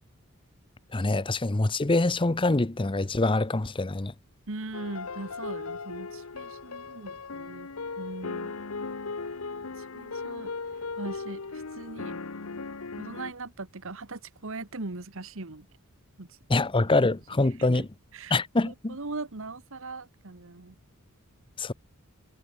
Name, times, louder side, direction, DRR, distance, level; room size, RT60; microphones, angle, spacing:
voice 1, 0.9-4.1 16.5-17.9 18.3-19.0 21.6-21.7, left 2 dB, 25° left, 0.7 m, -25 dB
voice 2, 4.5-8.5 9.8-12.2 13.0-15.7 16.2-17.9 18.1-20.8, right 3 dB, 65° right, 1.4 m, -41 dB
sound 1, 4.7-13.3, left 4 dB, 70° left, 1.0 m, -37 dB
head